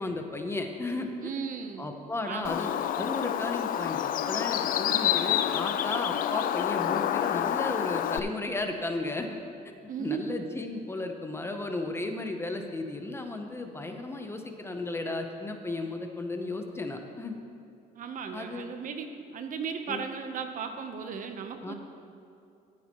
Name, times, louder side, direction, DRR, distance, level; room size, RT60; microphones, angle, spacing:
voice 1, 0.0-1.3 1.8-9.4 9.6-9.7 10.0-17.4 18.3-18.7 19.9-20.0 21.6-21.7, left 2 dB, 15° left, 5 dB, 0.7 m, -34 dB
voice 2, 1.2-1.9 2.3-2.6 9.9-10.3 17.9-21.7, right 6 dB, 50° right, 7 dB, 0.8 m, -36 dB
Bird, 2.4-8.2, left 10 dB, 55° left, 0.4 m, -28 dB
13.5 x 8.6 x 3.0 m, 2.6 s
cardioid pair, 110°, 17 cm